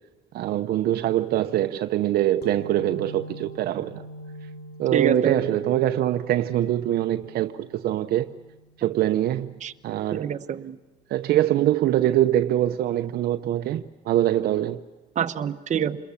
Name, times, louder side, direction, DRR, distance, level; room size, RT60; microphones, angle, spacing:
voice 1, 0.3-4.0 4.8-8.3 8.8-9.5 9.8-10.3 11.1-14.8, right 12 dB, 70° right, 0.8 m, -23 dB
sound 1, 2.4-9.7, equal, 75° left, 2.3 m, -44 dB
voice 2, 4.9-5.4 9.6-9.7 10.1-10.8 15.1-16.0, right 8 dB, 45° right, 1.2 m, -26 dB
27.5 x 21.5 x 7.2 m
cardioid pair, 110°, 17 cm